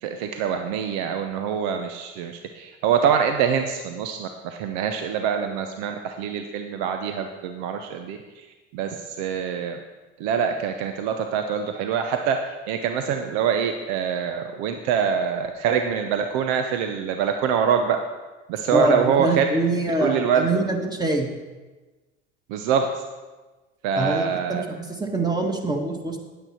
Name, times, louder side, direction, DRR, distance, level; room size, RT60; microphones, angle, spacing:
voice 1, 0.0-8.5 8.7-9.8 10.2-18.0 18.5-19.4 20.0-20.6 22.5-23.0 23.8-24.6, right 7 dB, 65° right, 6 dB, 0.8 m, -25 dB
voice 2, 18.7-21.3 24.0-26.2, right 2 dB, 10° right, 2 dB, 1.7 m, -24 dB
9.3 x 8.8 x 4.4 m, 1.2 s
hypercardioid pair, 75°, 35 cm